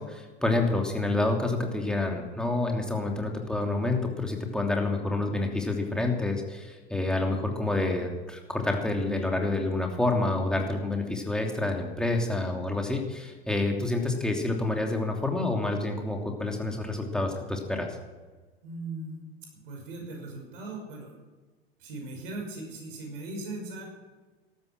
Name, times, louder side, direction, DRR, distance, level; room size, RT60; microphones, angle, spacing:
voice 1, 0.0-18.0, left 2 dB, ahead, 2 dB, 3.0 m, -28 dB
voice 2, 18.6-19.3 19.6-21.1 21.8-23.8, right 2 dB, 60° right, 2 dB, 5.9 m, -38 dB
15.0 x 12.5 x 6.1 m, 1.3 s
figure-of-eight pair, 75°, 31 cm